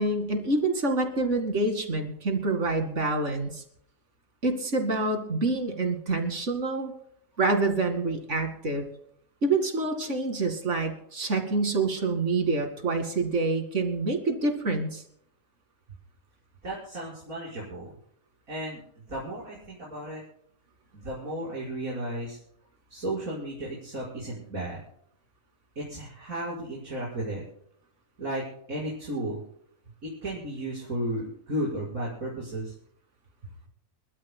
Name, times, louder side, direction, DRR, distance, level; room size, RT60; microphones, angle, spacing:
voice 1, 0.0-3.6 4.4-6.9 7.4-8.9 9.4-15.0, right 3 dB, 60° right, 6 dB, 2.6 m, -27 dB
voice 2, 16.6-17.9 18.5-18.8 19.1-20.2 20.9-22.4 22.9-24.8 25.8-27.4 28.2-28.4 28.7-29.4 30.0-32.7, right 1 dB, 90° right, -6 dB, 6.1 m, -34 dB
29.5 x 13.0 x 2.2 m, 0.69 s
omnidirectional pair, 1.4 m